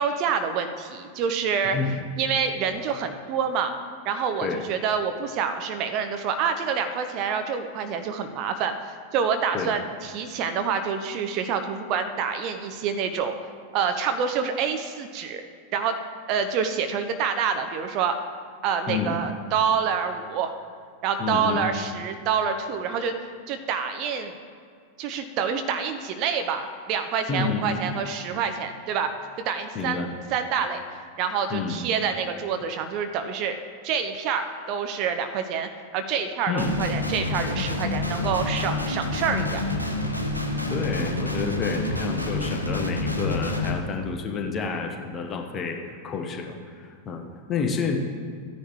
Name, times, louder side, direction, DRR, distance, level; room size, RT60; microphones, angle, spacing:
voice 1, 0.0-1.8 2.2-3.7 4.0-13.3 13.7-15.4 15.7-15.9 16.3-18.2 18.6-20.5 21.0-23.1 23.5-24.3 25.0-29.1 29.4-30.0 30.3-30.8 31.2-33.6 33.8-39.6, right 6 dB, 40° right, 7 dB, 0.7 m, -27 dB
voice 2, 18.9-19.3 21.2-21.7 27.3-28.0 29.7-30.1 31.5-31.8 36.5-36.8 40.7-48.0, left 5 dB, 25° left, 2 dB, 1.1 m, -29 dB
Guitar, 36.6-43.7, left 2 dB, 90° left, 0.9 m, -28 dB
14.5 x 9.9 x 3.0 m, 2.1 s
figure-of-eight pair, 90°, 0 cm